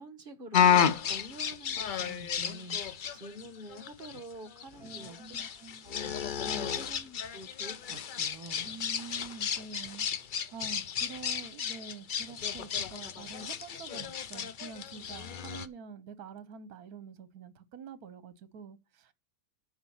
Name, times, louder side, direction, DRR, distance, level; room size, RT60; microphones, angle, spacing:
voice 1, 0.0-5.4 5.8-8.7, right 1 dB, 35° right, 1.3 m, -47 dB
sound 1, 0.5-15.7, left 8 dB, 80° left, 0.4 m, -32 dB
voice 2, 4.8-5.9 6.5-6.7 8.6-19.1, right 6 dB, 70° right, 1.4 m, -47 dB
9.7 x 5.1 x 7.0 m
omnidirectional pair, 1.7 m